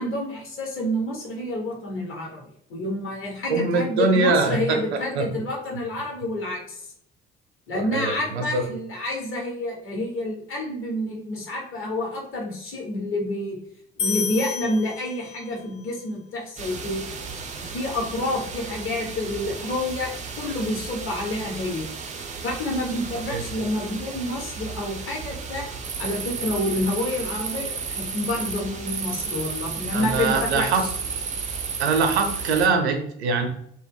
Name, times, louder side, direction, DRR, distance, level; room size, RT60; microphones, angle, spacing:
voice 1, 0.0-2.4 2.7-6.8 7.7-13.6 14.0-17.1 17.7-21.9 22.4-25.6 26.0-30.9, left 1 dB, 40° left, -1 dB, 1.0 m, -28 dB
voice 2, 3.5-4.8 5.2-5.3 7.7-8.7 23.3-23.4 29.9-30.8 31.8-33.5, right 4 dB, 80° right, 4 dB, 0.5 m, -23 dB
sound 1, 14.0-15.6, left 6 dB, 60° left, 0.5 m, -30 dB
sound 2, 16.6-32.7, right 5 dB, 25° right, 0.4 m, -33 dB
2.2 x 2.1 x 3.4 m, 0.70 s
figure-of-eight pair, 50°, 33 cm